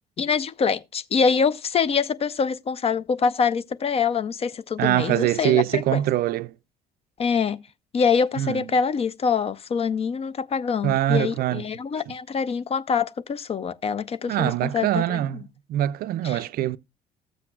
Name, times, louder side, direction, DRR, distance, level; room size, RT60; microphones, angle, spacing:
voice 1, 0.2-6.0 7.2-7.6 7.9-15.2 16.2-16.4, left 6 dB, 30° left, 0.5 m, -25 dB
voice 2, 4.8-6.5 8.4-8.6 10.8-11.6 14.3-15.4 15.7-16.8, right 13 dB, 50° right, 0.4 m, -23 dB
14.0 x 7.6 x 2.3 m
figure-of-eight pair, 50°, 20 cm